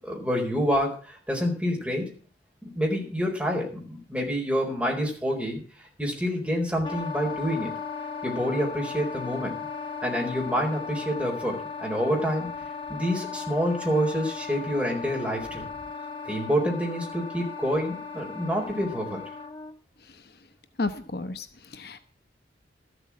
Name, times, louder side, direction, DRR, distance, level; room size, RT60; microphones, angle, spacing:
voice 1, 0.0-2.1 2.6-5.6 6.0-7.7 8.2-9.7 10.0-12.5 12.9-15.7 16.2-19.2, equal, 5° right, -2 dB, 4.5 m, -27 dB
Wind instrument woodwind instrument, 6.8-19.7, left 5 dB, 25° left, 1.5 m, -36 dB
voice 2, 20.8-22.0, left 3 dB, 55° left, 9 dB, 0.9 m, -32 dB
13.5 x 8.2 x 7.3 m, 0.40 s
head